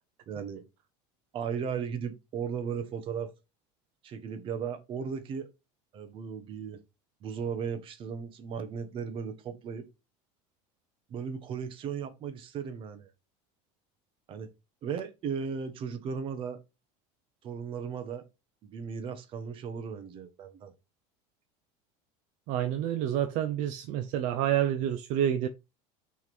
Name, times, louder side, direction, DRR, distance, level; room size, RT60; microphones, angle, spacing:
voice 1, 0.3-0.6 1.3-3.3 4.0-5.5 5.9-6.8 7.2-9.9 11.1-13.1 14.3-14.5 14.8-16.6 17.4-18.3 18.6-20.7, right 6 dB, 35° right, 1.1 m, -36 dB
voice 2, 22.5-25.5, right 10 dB, 50° right, 0.7 m, -28 dB
6.1 x 3.7 x 6.1 m
cardioid pair, 160°, 16 cm